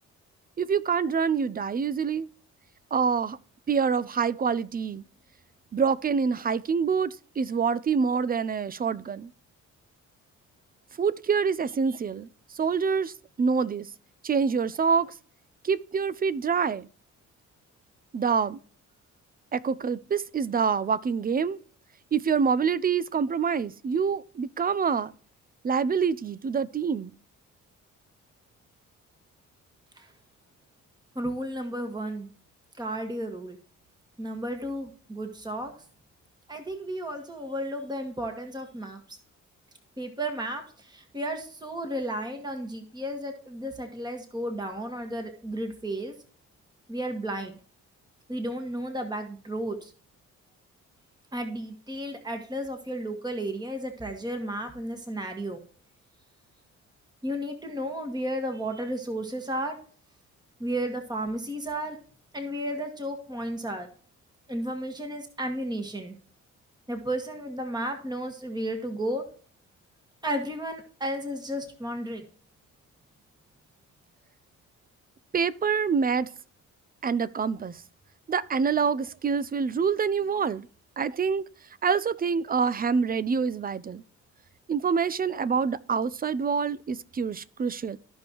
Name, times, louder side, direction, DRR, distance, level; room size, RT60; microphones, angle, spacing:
voice 1, 0.6-2.3 2.9-3.4 3.7-5.0 5.7-9.3 11.0-12.3 12.6-13.9 14.2-15.1 15.6-16.9 18.1-18.6 19.5-21.6 22.1-25.1 25.6-27.1 75.3-76.3 77.0-77.8 78.3-80.7 81.0-81.4 81.8-84.0 84.7-88.0, right 6 dB, 30° right, 0.5 m, -26 dB
voice 2, 31.1-32.3 32.8-33.6 34.2-35.7 36.5-39.2 40.0-46.1 46.9-47.5 48.3-49.9 51.3-55.6 57.2-59.8 60.6-62.0 62.3-63.9 64.5-66.1 66.9-69.2 70.2-72.2, right 1 dB, 15° right, 1.6 m, -33 dB
14.5 x 5.3 x 3.0 m
cardioid pair, 85°, 31 cm